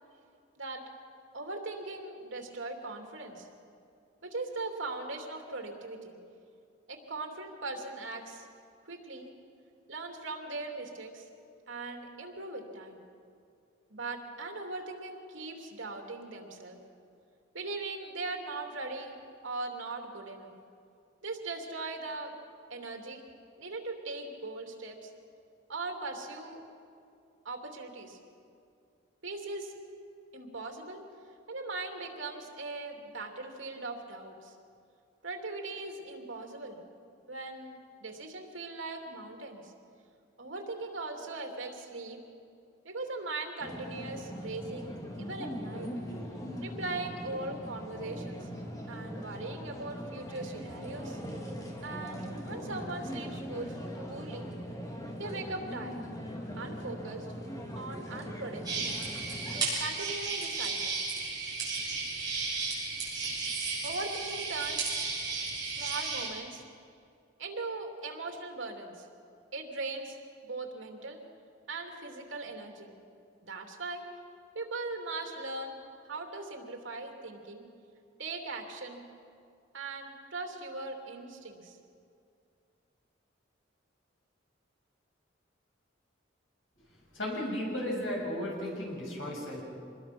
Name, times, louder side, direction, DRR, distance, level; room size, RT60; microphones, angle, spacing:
voice 1, 1.3-3.5 4.2-6.1 6.9-8.5 8.9-9.3 9.9-11.3 11.7-13.0 13.9-16.8 17.5-19.1 19.4-20.5 21.2-22.3 22.7-23.2 23.6-25.1 25.7-26.6 27.4-28.2 29.2-29.8 30.3-31.0 31.5-34.5 35.2-36.8 37.3-39.7 40.4-42.2 42.8-46.3 46.6-48.5 48.9-51.2 51.8-53.8 54.1-54.5 55.1-56.0 56.6-57.3 57.7-58.9 59.8-61.0 63.8-64.9 65.6-66.6 67.4-69.1 69.5-70.2 70.4-71.2 71.7-72.9 73.4-74.1 74.5-75.8 76.1-77.7 78.2-79.0 79.7-81.8, right 3 dB, 85° right, 2 dB, 3.0 m, -39 dB
sound 1, 43.6-59.6, equal, 20° left, 2.1 m, -40 dB
sound 2, 58.6-66.3, right 4 dB, 20° right, 6.4 m, -34 dB
voice 2, 87.1-89.6, left 1 dB, 85° left, -2 dB, 6.9 m, -34 dB
26.0 x 20.5 x 6.1 m, 2.5 s
head